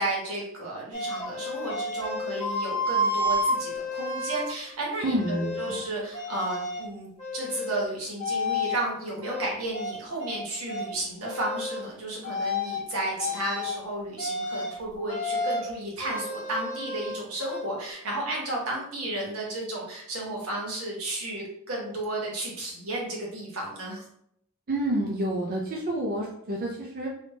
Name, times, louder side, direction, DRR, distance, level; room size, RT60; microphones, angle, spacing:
voice 1, 0.0-24.0, right 2 dB, 80° right, -3 dB, 1.3 m, -33 dB
sound 1, 0.9-4.5 5.0-5.8 6.1-6.9 7.2-7.8 8.2-8.8 9.2-10.4 10.7-10.9 11.2-11.8 12.2-12.8 13.2-13.7 14.2-14.7 15.1-15.7 16.0-17.6, left 1 dB, 35° left, 1.2 m, -31 dB
voice 2, 5.0-5.8 24.7-27.1, right 1 dB, 45° right, -2 dB, 0.5 m, -29 dB
3.3 x 3.1 x 2.7 m, 0.71 s
head